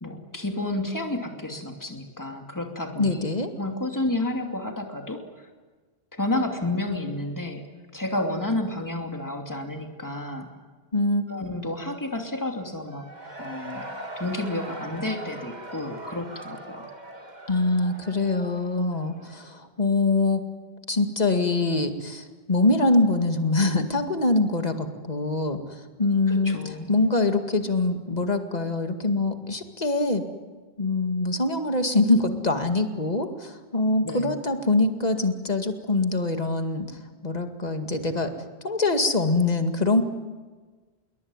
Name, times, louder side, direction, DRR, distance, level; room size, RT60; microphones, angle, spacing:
voice 1, 0.0-3.3 3.6-5.5 6.1-7.6 7.9-10.5 11.3-13.1 13.4-13.9 14.2-16.9 26.3-26.9 34.0-34.3, left 1 dB, 15° left, 3 dB, 2.7 m, -30 dB
voice 2, 3.0-3.5 10.9-11.3 17.5-20.4 20.9-25.6 26.0-26.6 26.9-30.2 30.8-36.9 37.2-38.3 38.6-40.0, left 2 dB, 40° left, 6 dB, 2.3 m, -24 dB
Cheering / Crowd, 12.8-19.6, right 1 dB, 40° right, 2.2 m, -41 dB
27.0 x 22.5 x 9.7 m, 1.4 s
omnidirectional pair, 1.1 m